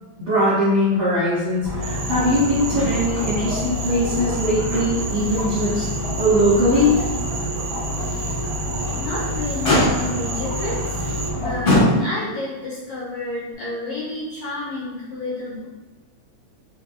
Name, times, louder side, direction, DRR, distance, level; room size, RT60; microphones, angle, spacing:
voice 1, 0.2-5.9 6.2-6.9, equal, 70° right, -11 dB, 0.6 m, -20 dB
sound 1, 1.6-11.6, left 1 dB, 40° right, 1.5 m, -27 dB
Cricket / Frog, 1.8-11.3, right 3 dB, 85° right, 2.1 m, -33 dB
Motor vehicle (road), 2.7-3.3 3.6-3.7 4.3-5.2 5.6-5.8 6.3-6.4 8.6-9.1 9.6-10.3 11.1-11.2 11.6-12.4 13.5-13.6, left 1 dB, 45° left, 0.7 m, -22 dB
voice 2, 9.0-15.7, left 2 dB, 80° left, -6 dB, 1.4 m, -30 dB
4.8 x 2.6 x 2.4 m, 1.2 s
omnidirectional pair, 3.4 m